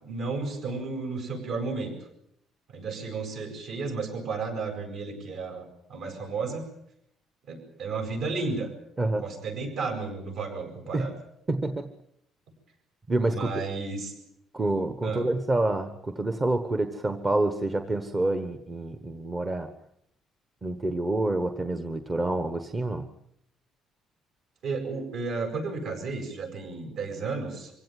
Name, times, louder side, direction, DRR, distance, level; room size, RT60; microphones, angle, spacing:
voice 1, 0.0-1.9 2.7-6.6 7.5-8.7 9.2-11.1 13.3-14.1 15.0-15.3 24.6-27.7, right 4 dB, 55° right, 4 dB, 7.9 m, -33 dB
voice 2, 11.5-11.9 13.1-13.6 14.5-19.7 20.6-23.1, right 2 dB, 20° right, 8 dB, 1.2 m, -27 dB
25.0 x 16.5 x 9.3 m, 0.75 s
cardioid pair, 170°, 0 cm